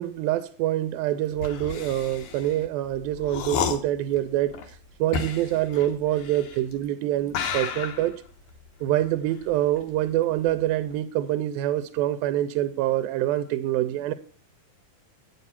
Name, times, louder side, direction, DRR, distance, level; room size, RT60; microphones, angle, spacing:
voice 1, 0.0-4.6 5.0-8.2 8.8-14.1, right 13 dB, 90° right, 2.4 m, -25 dB
sound 1, 1.3-6.8 7.3-10.2 10.5-10.9, left 6 dB, 65° left, 2.1 m, -33 dB
8.6 x 7.1 x 5.6 m
omnidirectional pair, 4.1 m